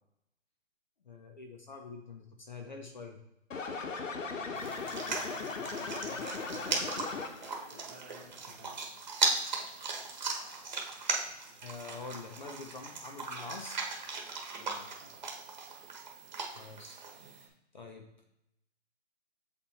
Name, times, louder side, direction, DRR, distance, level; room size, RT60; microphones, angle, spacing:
voice 1, 1.0-3.2 11.6-13.8 16.5-18.2, left 4 dB, 40° left, 3 dB, 0.8 m, -46 dB
sound 1, 3.5-7.6, left 4 dB, 80° left, 1.2 m, -38 dB
voice 2, 4.3-5.2 5.6-6.8 7.7-8.7 14.6-15.2, left 1 dB, 10° right, -6 dB, 1.2 m, -54 dB
sound 2, 4.6-17.5, right 4 dB, 35° right, 1.3 m, -37 dB
7.2 x 4.1 x 4.2 m, 0.84 s
hypercardioid pair, 170°, 37 cm